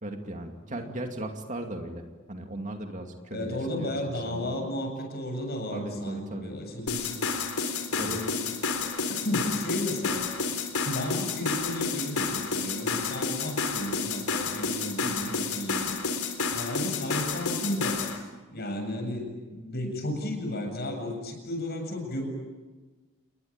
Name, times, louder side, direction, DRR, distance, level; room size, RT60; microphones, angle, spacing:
voice 1, 0.0-4.7 5.7-6.5 8.0-8.2 15.0-15.4, right 1 dB, 35° right, 4 dB, 2.4 m, -38 dB
voice 2, 3.3-7.3 7.9-8.4 8.8-10.3 10.9-15.9 16.5-18.0 18.5-22.3, left 1 dB, 45° left, 4 dB, 7.7 m, -33 dB
sound 1, 6.9-18.2, left 4 dB, 80° left, 4.2 m, -30 dB
30.0 x 21.5 x 8.9 m, 1.2 s
head